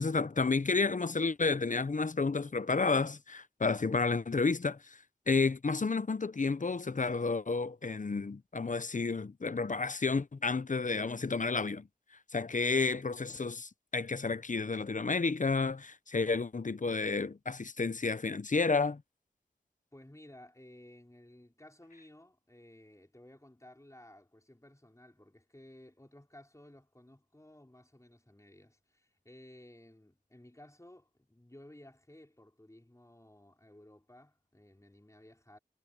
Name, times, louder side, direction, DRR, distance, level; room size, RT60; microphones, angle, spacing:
voice 1, 0.0-5.0 5.3-11.9 12.3-19.0, left 4 dB, 45° left, 0.8 m, -31 dB
voice 2, 19.9-35.6, left 1 dB, 15° left, 5.4 m, -56 dB
cardioid pair, 45°, 17 cm